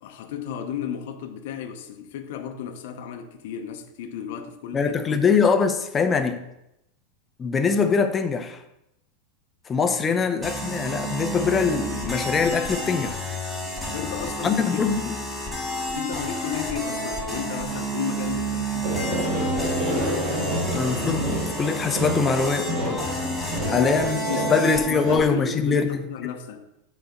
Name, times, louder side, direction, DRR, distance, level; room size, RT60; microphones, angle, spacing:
voice 1, 0.0-5.2 10.1-10.2 13.9-14.9 15.9-19.7 23.6-26.7, left 8 dB, 60° left, 0.7 m, -33 dB
voice 2, 4.7-6.4 7.4-8.6 9.7-13.2 14.4-15.1 20.7-22.7 23.7-24.2 24.5-25.9, left 5 dB, 15° left, 0.5 m, -23 dB
sound 1, 10.4-25.2, right 1 dB, 5° right, 1.3 m, -30 dB
sound 2, 18.8-25.2, equal, 40° right, 1.8 m, -28 dB
7.8 x 4.1 x 5.1 m
supercardioid pair, 165°, 0 cm